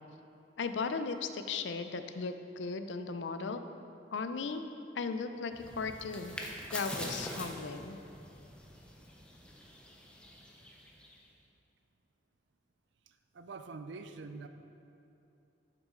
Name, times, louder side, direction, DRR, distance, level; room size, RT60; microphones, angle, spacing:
voice 1, 0.6-3.6 4.1-4.6 4.9-6.4 6.7-8.0, left 4 dB, 80° left, 8 dB, 0.5 m, -36 dB
sound 1, 5.5-11.3, left 1 dB, 5° left, 0.8 m, -44 dB
voice 2, 13.1-14.5, right 4 dB, 75° right, 8 dB, 0.5 m, -46 dB
10.5 x 6.0 x 3.8 m, 2.8 s
head